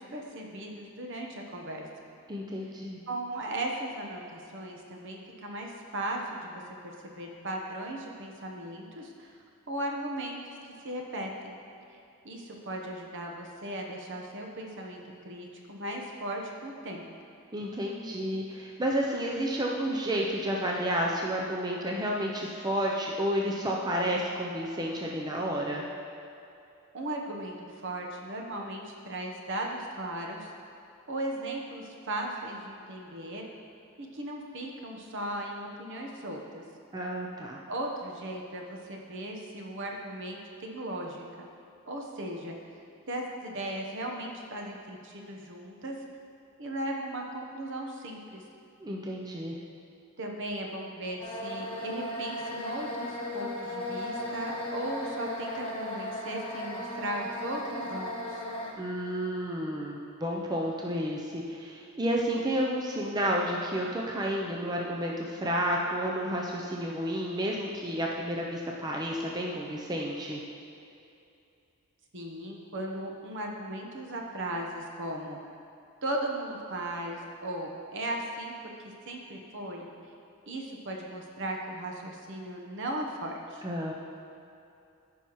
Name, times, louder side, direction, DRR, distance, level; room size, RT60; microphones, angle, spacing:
voice 1, 0.0-1.8 3.1-6.6 7.0-9.4 9.7-10.4 10.8-11.6 12.2-17.1 26.9-30.5 31.1-33.4 34.0-36.6 37.7-41.5 41.9-42.6 43.1-46.0 46.6-48.4 50.2-58.4 72.1-75.4 76.0-78.7 79.1-79.9 80.5-83.6, right 1 dB, 60° right, 0 dB, 1.0 m, -37 dB
voice 2, 2.3-3.0 17.5-25.8 36.9-37.6 48.8-49.6 58.8-70.4 83.6-83.9, equal, 20° right, -1 dB, 0.5 m, -31 dB
sound 1, 51.2-58.7, left 1 dB, 25° left, 1.1 m, -36 dB
13.5 x 5.6 x 3.1 m, 2.7 s
head